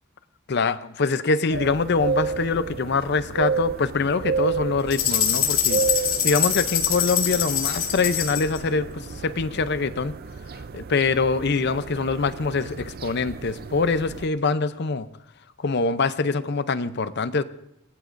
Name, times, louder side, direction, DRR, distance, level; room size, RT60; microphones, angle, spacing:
voice 1, 0.5-5.8 6.2-10.1 10.7-15.1 15.6-17.4, left 4 dB, 55° left, 13 dB, 0.6 m, -24 dB
sound 1, 1.5-14.3, right 5 dB, 50° right, 0.5 m, -31 dB
sound 2, 4.9-8.6, left 9 dB, 80° left, 2.6 m, -24 dB
25.5 x 19.5 x 2.6 m, 0.80 s
head